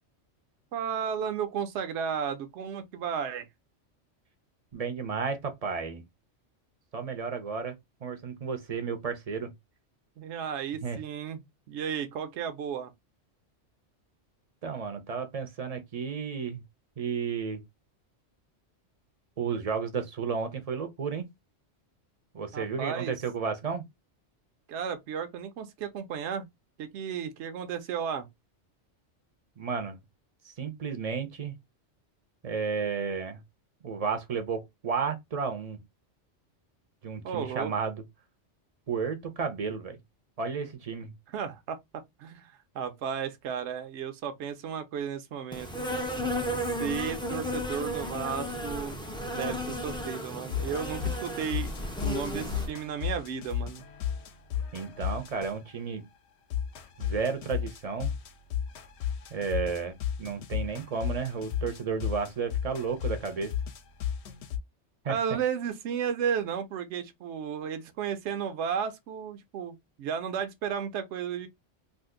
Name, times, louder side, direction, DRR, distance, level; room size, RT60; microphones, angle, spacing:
voice 1, 0.7-3.5 10.2-12.9 22.5-23.1 24.7-26.5 26.8-28.3 37.2-37.7 41.3-45.7 46.8-49.0 49.3-51.7 52.0-53.8 65.1-71.5, right 7 dB, 70° right, 0.9 m, -34 dB
voice 2, 4.7-6.0 6.9-9.5 10.8-11.0 14.6-16.6 17.0-17.6 19.4-21.2 22.3-23.9 29.6-30.0 30.4-31.6 32.4-33.4 33.8-35.8 37.0-38.0 38.9-40.0 40.4-41.1 54.7-56.1 57.0-58.1 59.3-63.5 65.0-65.2, right 5 dB, 40° right, 0.6 m, -32 dB
Insect, 45.5-52.7, equal, 10° left, 0.3 m, -34 dB
sound 1, 50.5-55.8 56.5-64.6, left 9 dB, 70° left, 0.8 m, -34 dB
2.7 x 2.5 x 3.6 m
omnidirectional pair, 1.3 m